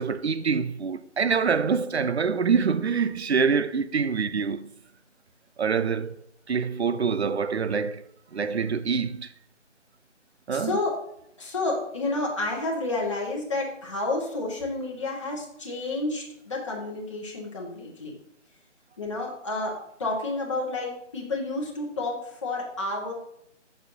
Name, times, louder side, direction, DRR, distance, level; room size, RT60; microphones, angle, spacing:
voice 1, 0.0-4.7 5.6-6.2 6.5-8.0 8.3-9.3 10.5-10.8, right 5 dB, 60° right, 0.6 m, -25 dB
voice 2, 10.5-10.9 11.4-18.2 19.0-23.1, left 2 dB, 25° left, 1.4 m, -30 dB
7.9 x 6.5 x 2.7 m
figure-of-eight pair, 170°, 37 cm